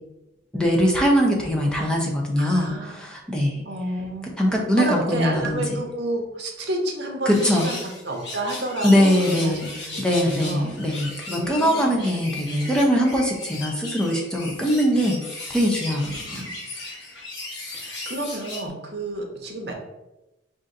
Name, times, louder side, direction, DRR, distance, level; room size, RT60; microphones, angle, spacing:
voice 1, 0.5-2.7 3.0-3.6 4.4-5.6 7.3-7.7 8.8-9.7 10.0-16.4, equal, 5° left, -2 dB, 0.6 m, -21 dB
voice 2, 2.4-3.0 3.6-4.3 4.7-9.6 9.9-10.1 10.4-10.7 11.3-12.0 16.2-16.5 17.7-19.7, right 1 dB, 55° right, 1 dB, 0.8 m, -30 dB
sound 1, 7.3-18.7, left 2 dB, 55° left, 1.2 m, -36 dB
3.8 x 2.6 x 3.9 m, 0.99 s
head